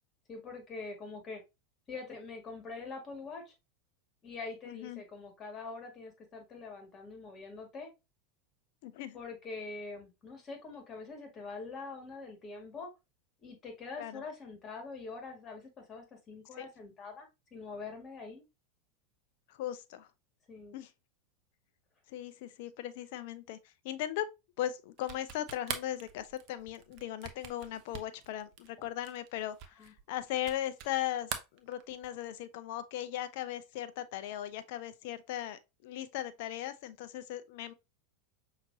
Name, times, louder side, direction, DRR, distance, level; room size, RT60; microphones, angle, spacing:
voice 1, 0.3-1.4 1.9-3.5 4.2-7.9 9.1-12.9 13.4-18.4 20.5-20.8 29.8-29.9, left 4 dB, 35° left, 1.8 m, -44 dB
voice 2, 4.7-5.0 8.8-9.2 14.0-14.2 16.6-16.7 19.5-20.1 20.7-20.9 22.1-24.3 24.6-37.7, left 12 dB, 60° left, 0.5 m, -38 dB
sound 1, 25.0-31.0 31.2-32.2, right 8 dB, 50° right, 0.7 m, -43 dB
5.8 x 2.9 x 2.7 m
hypercardioid pair, 90°, 0 cm